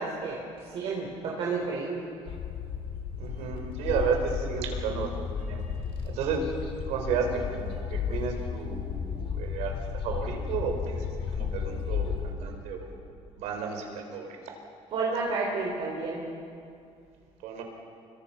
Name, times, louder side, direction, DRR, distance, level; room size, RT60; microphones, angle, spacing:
voice 1, 0.0-2.0 14.9-16.2, right 4 dB, 55° right, -3 dB, 4.0 m, -31 dB
sound 1, 2.3-12.3, left 6 dB, 55° left, 3.1 m, -33 dB
voice 2, 3.2-5.6 6.0-6.5 6.9-11.1 11.3-12.9 13.4-14.3 17.4-17.6, right 6 dB, 80° right, 3 dB, 4.5 m, -32 dB
29.5 x 23.0 x 5.8 m, 2.4 s
cardioid pair, 145°, 11 cm